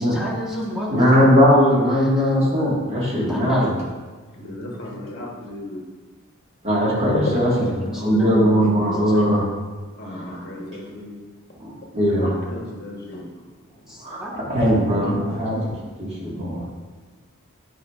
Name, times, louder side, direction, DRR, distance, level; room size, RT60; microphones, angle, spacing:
voice 1, 0.0-1.2 2.0-2.3 3.3-3.7 7.5-8.9 9.1-9.3 13.9-14.3 14.9-15.4, equal, ahead, -5 dB, 1.1 m, -32 dB
voice 2, 0.9-3.7 6.6-7.7 8.0-9.5 10.3-10.4 11.6-12.3 14.0-15.7 16.0-16.6, equal, 30° right, -6 dB, 1.5 m, -19 dB
voice 3, 4.4-5.8 7.1-7.3 10.0-11.1 12.5-13.3, left 2 dB, 45° left, -2 dB, 1.0 m, -33 dB
9.0 x 4.7 x 2.3 m, 1.3 s
head